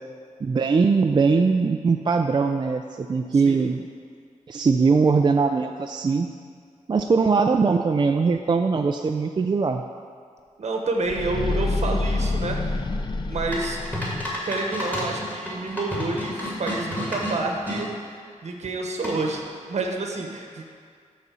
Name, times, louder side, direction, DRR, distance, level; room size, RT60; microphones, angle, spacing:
voice 1, 0.4-3.8 4.5-6.3 6.9-9.8, right 4 dB, 35° right, 4 dB, 0.3 m, -21 dB
voice 2, 10.6-12.8 13.3-13.8 14.4-20.6, right 3 dB, 60° right, 2 dB, 1.0 m, -29 dB
sound 1, 11.0-14.3, left 2 dB, 35° left, 0.5 m, -27 dB
sound 2, 13.5-17.8 19.0-19.5, left 1 dB, 15° left, 2.3 m, -30 dB
12.0 x 4.1 x 6.9 m, 2.1 s
wide cardioid pair, 120°, 13 cm